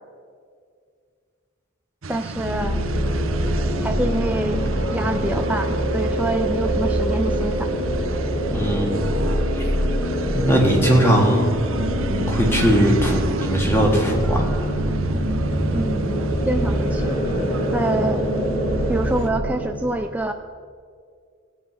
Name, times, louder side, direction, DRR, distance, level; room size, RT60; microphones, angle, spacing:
sound 1, 2.0-19.3, right 2 dB, 80° right, 0.8 m, -31 dB
voice 1, 2.1-2.8 3.8-4.6 4.9-7.7 15.7-17.2 17.7-18.2 18.9-20.3, right 1 dB, 5° right, 4 dB, 0.3 m, -26 dB
sound 2, 2.4-19.8, equal, 55° left, 4.5 m, -24 dB
voice 2, 8.5-9.1 9.6-9.7 10.3-11.5 12.3-14.7, equal, 10° left, 0 dB, 1.9 m, -20 dB
17.5 x 8.4 x 5.7 m, 2.2 s
head